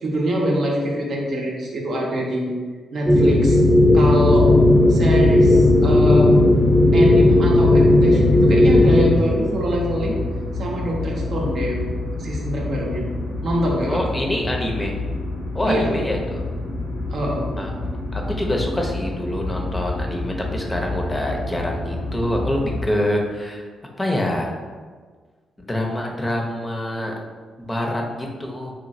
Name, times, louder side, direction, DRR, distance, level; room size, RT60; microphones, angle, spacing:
voice 1, 0.0-2.5 2.9-3.6 3.9-4.5 4.9-6.3 6.9-10.2 10.5-11.9 12.2-13.0 13.4-14.0 15.7-15.9 17.1-17.4, equal, 60° right, -2 dB, 0.6 m, -24 dB
sound 1, 3.1-9.1, left 1 dB, 20° right, 0.7 m, -14 dB
sound 2, 4.1-22.9, left 2 dB, 90° left, 0.7 m, -28 dB
voice 2, 13.9-14.9 15.5-16.4 17.6-17.7 18.1-23.7 24.0-24.5 25.6-27.1 27.7-28.7, left 1 dB, 20° left, 0 dB, 0.6 m, -25 dB
3.0 x 2.4 x 2.5 m, 1.5 s
hypercardioid pair, 40°, 0 cm